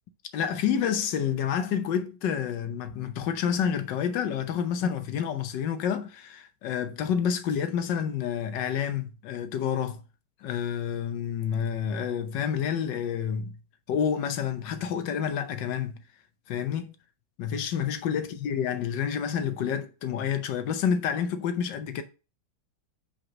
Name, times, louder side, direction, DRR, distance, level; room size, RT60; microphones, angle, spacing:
voice 1, 0.3-10.0 10.4-13.6 13.9-16.0 16.5-16.9 17.4-22.0, left 8 dB, 90° left, 1.5 m, -29 dB
5.2 x 4.3 x 6.1 m
omnidirectional pair, 1.9 m